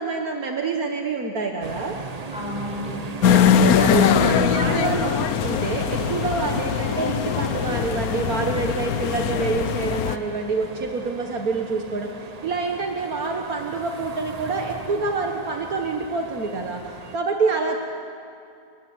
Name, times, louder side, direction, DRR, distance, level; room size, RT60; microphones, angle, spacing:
voice 1, 0.0-2.0 3.8-16.8 17.1-17.8, right 4 dB, 65° right, 2 dB, 1.9 m, -27 dB
sound 1, 1.6-17.2, right 4 dB, 30° right, 0.8 m, -37 dB
voice 2, 2.3-3.0 3.3-4.7, left 2 dB, 5° right, -4 dB, 7.8 m, -29 dB
sound 2, 3.2-10.2, left 8 dB, 70° left, 1.2 m, -21 dB
28.0 x 15.5 x 9.5 m, 2.4 s
omnidirectional pair, 1.7 m